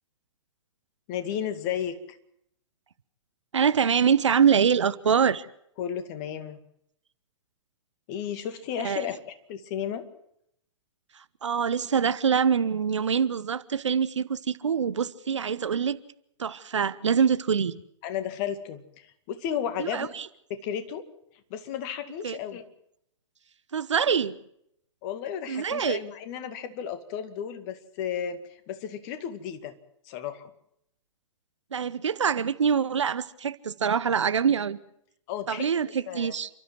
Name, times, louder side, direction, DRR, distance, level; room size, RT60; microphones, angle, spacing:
voice 1, 1.1-2.2 5.8-6.6 8.1-9.2 9.5-10.0 18.0-20.1 20.6-21.0 21.5-22.6 25.0-29.8 30.0-30.5 35.3-36.3, left 9 dB, 35° left, 2.2 m, -33 dB
voice 2, 3.5-5.5 8.8-9.1 11.1-16.0 16.4-17.8 19.8-20.3 22.2-22.4 23.7-24.4 25.5-26.0 31.7-34.8 35.5-36.5, right 7 dB, 65° right, 1.0 m, -25 dB
29.5 x 13.0 x 7.8 m
figure-of-eight pair, 110°, 16 cm